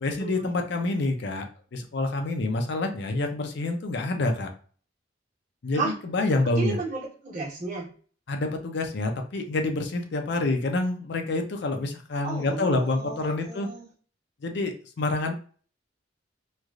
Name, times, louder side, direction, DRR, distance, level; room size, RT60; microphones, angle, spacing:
voice 1, 0.0-1.5 1.7-4.5 5.6-6.8 8.3-13.7 14.4-15.3, left 2 dB, 65° left, 5 dB, 0.5 m, -27 dB
voice 2, 6.4-7.9 12.2-13.8, right 3 dB, 45° right, -4 dB, 1.2 m, -33 dB
3.2 x 2.4 x 2.4 m, 0.42 s
head